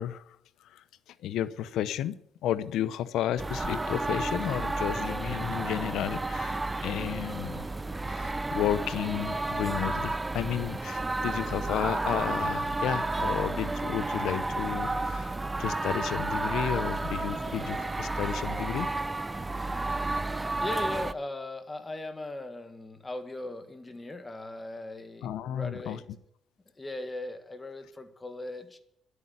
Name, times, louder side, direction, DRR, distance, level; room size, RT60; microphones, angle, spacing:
voice 1, 0.0-2.2 2.4-7.7 8.1-15.3 15.6-18.9 25.2-26.2, left 11 dB, 85° left, 16 dB, 0.7 m, -32 dB
sound 1, 3.4-21.1, right 2 dB, 15° right, 0.6 m, -31 dB
voice 2, 20.6-26.0 26.8-28.8, left 2 dB, 20° left, 8 dB, 1.9 m, -38 dB
11.5 x 8.2 x 9.7 m, 0.72 s
cardioid pair, 90°, 0 cm